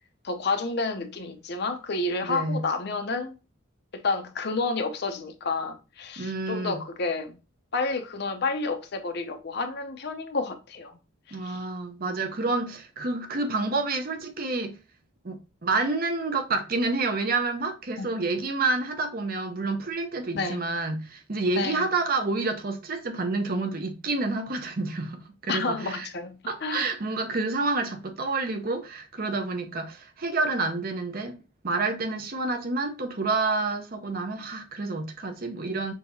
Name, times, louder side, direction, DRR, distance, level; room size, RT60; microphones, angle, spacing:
voice 1, 0.2-3.3 3.9-7.4 7.7-11.0 11.3-11.7 18.0-18.1 20.3-20.6 21.6-21.9 25.5-26.9, left 3 dB, 55° left, 0.6 m, -30 dB
voice 2, 2.2-2.6 6.2-6.8 11.3-14.8 15.2-26.1 26.5-31.4 31.6-35.9, right 3 dB, 45° right, 0.7 m, -29 dB
6.3 x 2.8 x 2.6 m
head